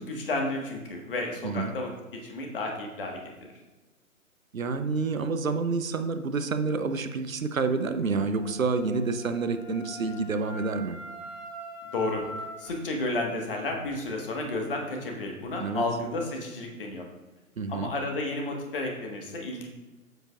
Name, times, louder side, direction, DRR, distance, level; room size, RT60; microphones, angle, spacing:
voice 1, 0.0-1.9 2.2-3.2 11.9-12.2 12.6-17.0 17.7-19.7, left 2 dB, 40° left, 1 dB, 1.5 m, -32 dB
voice 2, 1.4-1.7 4.5-11.0 15.6-15.8 17.6-17.9, right 4 dB, 65° right, 9 dB, 0.8 m, -28 dB
Wind instrument woodwind instrument, 8.1-12.8, right 1 dB, 25° right, 2.0 m, -43 dB
9.1 x 8.0 x 2.4 m, 1.1 s
figure-of-eight pair, 135°, 43 cm